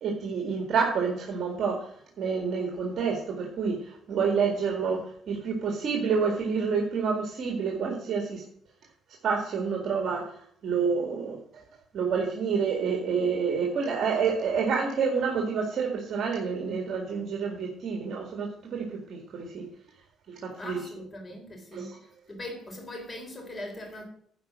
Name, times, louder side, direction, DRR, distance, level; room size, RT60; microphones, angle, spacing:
voice 1, 0.0-1.9 2.2-8.4 9.2-10.2 10.6-11.4 11.9-19.7 20.3-20.8 21.7-22.0, right 5 dB, 55° right, 1.9 m, -28 dB
voice 2, 20.6-22.0 22.3-24.0, left 1 dB, 25° left, 3.7 m, -40 dB
11.0 x 5.1 x 7.3 m
cardioid pair, 125°, 0 cm